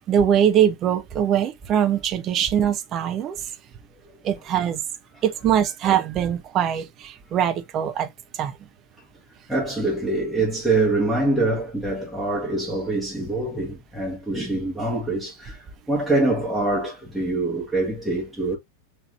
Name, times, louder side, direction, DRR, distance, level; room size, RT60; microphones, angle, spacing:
voice 1, 0.1-3.4 4.2-4.8 5.2-8.1 8.3-8.6, right 9 dB, 30° right, 0.8 m, -22 dB
voice 2, 9.5-18.6, right 2 dB, ahead, 1.4 m, -24 dB
6.0 x 2.9 x 2.5 m
figure-of-eight pair, 90°, 0 cm